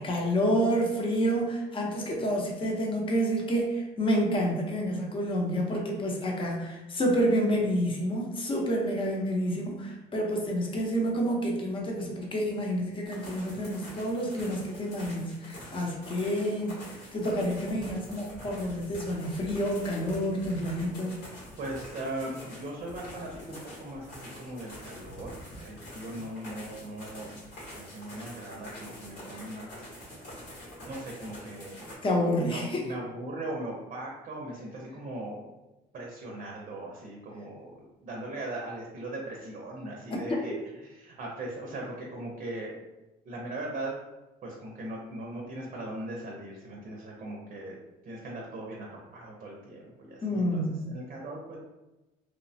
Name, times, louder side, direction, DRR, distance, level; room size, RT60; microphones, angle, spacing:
voice 1, 0.0-21.2 29.3-29.4 32.0-32.9 40.1-40.4 50.2-50.9, equal, 30° left, -1 dB, 0.7 m, -29 dB
sound 1, 13.0-32.0, equal, 80° left, 1.3 m, -46 dB
voice 2, 21.4-29.7 30.9-31.9 32.4-35.4 35.9-37.7 38.0-40.6 40.8-42.8 43.3-44.0 44.4-47.8 48.0-50.6 50.9-51.6, right 1 dB, 50° right, -1 dB, 0.6 m, -39 dB
3.0 x 2.1 x 2.7 m, 1.0 s
cardioid pair, 110°, 17 cm